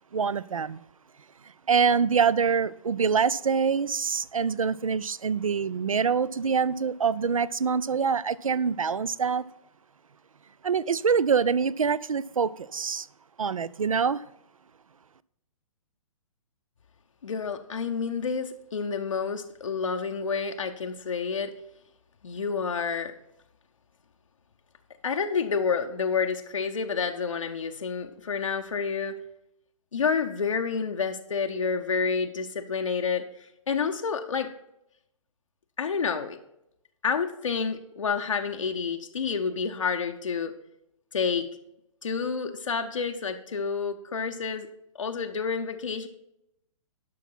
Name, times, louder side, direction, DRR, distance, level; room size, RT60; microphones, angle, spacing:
voice 1, 0.1-0.8 1.7-9.5 10.6-13.1 13.4-14.2, right 6 dB, 75° right, 20 dB, 0.4 m, -25 dB
voice 2, 17.2-21.5 22.2-23.1 25.0-29.2 29.9-34.5 35.8-36.4 37.0-40.5 41.1-41.5 42.0-44.7 44.9-46.1, left 5 dB, 65° left, 5 dB, 0.6 m, -29 dB
11.5 x 5.8 x 4.3 m, 0.82 s
figure-of-eight pair, 125°, 17 cm